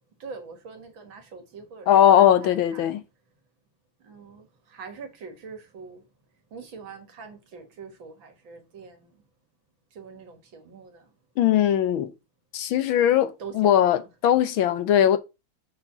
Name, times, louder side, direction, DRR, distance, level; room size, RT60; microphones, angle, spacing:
voice 1, 0.2-1.9 2.2-2.9 4.0-6.1 6.5-9.2 9.9-11.1 13.4-14.1, right 5 dB, 65° right, 2.5 m, -43 dB
voice 2, 1.9-3.0 11.4-12.1 12.5-15.2, left 10 dB, 75° left, 1.6 m, -20 dB
6.9 x 4.4 x 5.9 m
omnidirectional pair, 2.3 m